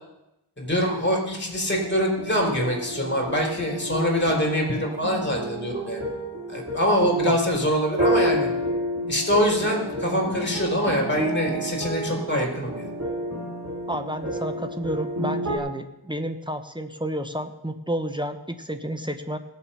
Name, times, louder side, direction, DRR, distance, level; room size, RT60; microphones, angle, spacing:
voice 1, 0.6-6.0 6.5-8.5 9.1-12.9, equal, 25° left, 0 dB, 4.1 m, -24 dB
sound 1, 1.7-15.6, equal, 35° right, 3.8 m, -30 dB
voice 2, 7.1-7.4 13.9-19.4, equal, 10° right, 8 dB, 1.0 m, -31 dB
19.0 x 7.4 x 5.7 m, 0.92 s
wide cardioid pair, 60°, 45 cm